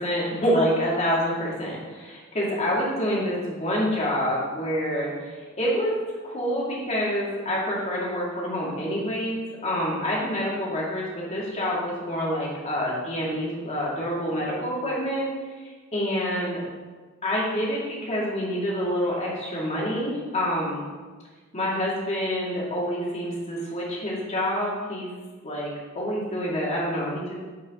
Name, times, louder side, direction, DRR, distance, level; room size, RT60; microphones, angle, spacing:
voice 1, 0.0-5.9 6.2-15.3 15.6-16.6 17.2-20.8 21.5-25.1 25.4-27.3, equal, 35° left, -5 dB, 2.4 m, -27 dB
11.0 x 5.3 x 3.8 m, 1.4 s
head